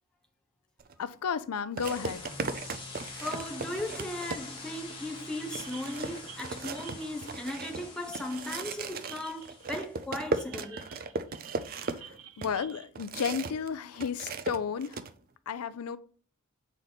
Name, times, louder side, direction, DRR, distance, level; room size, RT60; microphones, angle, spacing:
sound 1, 0.8-0.9 1.8-4.8 5.2-5.3 5.5-13.7 13.9-15.1, right 4 dB, 40° right, 0.5 m, -37 dB
voice 1, 1.0-2.3 11.9-12.1 12.4-15.0 15.5-16.0, left 6 dB, 80° left, 0.5 m, -33 dB
sound 2, 1.8-10.0, left 3 dB, 25° left, 1.8 m, -45 dB
voice 2, 2.9-10.8, left 1 dB, 5° left, 0.9 m, -37 dB
sound 3, 5.5-12.9, right 9 dB, 75° right, 0.9 m, -51 dB
7.0 x 4.5 x 4.0 m
head